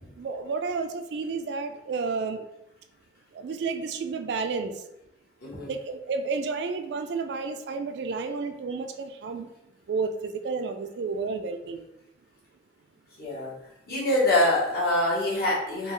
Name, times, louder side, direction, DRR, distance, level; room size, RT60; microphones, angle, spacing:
voice 1, 0.2-2.4 3.3-4.8 5.7-9.5 9.9-11.8, right 4 dB, 65° right, 7 dB, 0.3 m, -31 dB
voice 2, 13.2-13.5 13.9-15.9, left 1 dB, 55° left, -7 dB, 1.4 m, -24 dB
3.6 x 2.4 x 3.1 m, 0.86 s
head